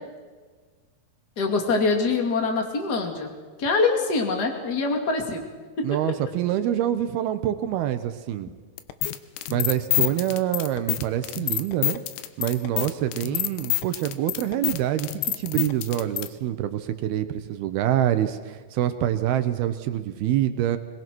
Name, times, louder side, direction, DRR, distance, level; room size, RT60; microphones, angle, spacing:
voice 1, 1.4-3.3 3.6-5.5 5.8-5.9 9.9-10.2, left 3 dB, 30° left, 3 dB, 2.4 m, -24 dB
voice 2, 5.8-8.5 9.5-12.0 12.4-20.8, right 12 dB, 75° right, 10 dB, 2.7 m, -26 dB
sound 1, 8.8-16.3, left 16 dB, 90° left, 3.0 m, -27 dB
22.0 x 21.5 x 6.2 m, 1.4 s
omnidirectional pair, 4.8 m